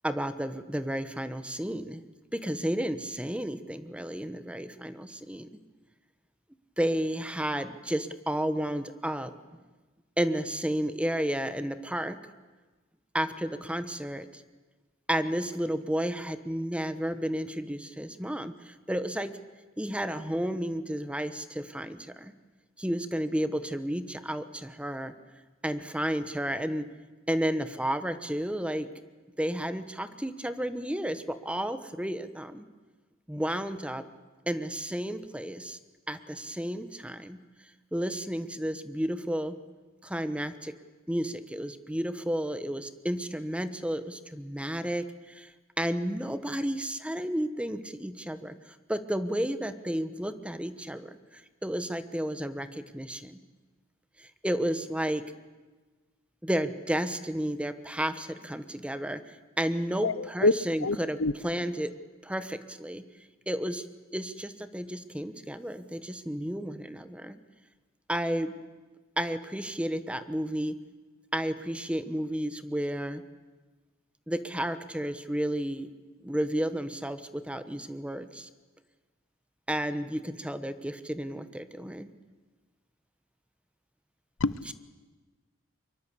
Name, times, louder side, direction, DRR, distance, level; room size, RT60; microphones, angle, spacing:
voice 1, 0.0-2.0 2.3-5.5 6.8-9.3 10.2-12.2 13.1-14.4 15.1-19.3 19.8-22.3 22.8-25.1 25.6-26.9 27.3-28.9 29.4-32.7 33.3-34.0 34.5-35.8 36.1-37.4 37.9-39.6 40.0-40.7 41.1-45.5 45.8-53.4 54.2-55.2 56.4-61.2 61.4-61.9 62.2-63.0 63.5-63.9 64.1-67.4 68.1-68.5 69.2-70.8 71.3-73.2 74.3-75.9 76.2-78.5 79.7-82.1, equal, 5° right, 11 dB, 1.1 m, -32 dB
voice 2, 60.0-60.5 60.8-61.3 84.4-84.7, left 3 dB, 75° left, 17 dB, 0.8 m, -26 dB
24.0 x 23.5 x 8.5 m, 1.3 s
head